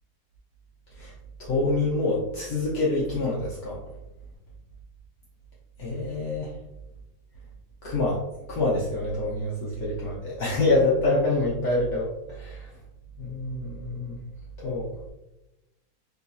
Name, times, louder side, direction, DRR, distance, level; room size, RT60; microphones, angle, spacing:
voice 1, 1.4-3.8 5.8-6.5 7.8-8.2 8.5-12.7 13.2-14.2 14.6-15.1, left 2 dB, 80° left, -6 dB, 0.8 m, -26 dB
3.7 x 2.3 x 2.5 m, 0.95 s
omnidirectional pair, 2.4 m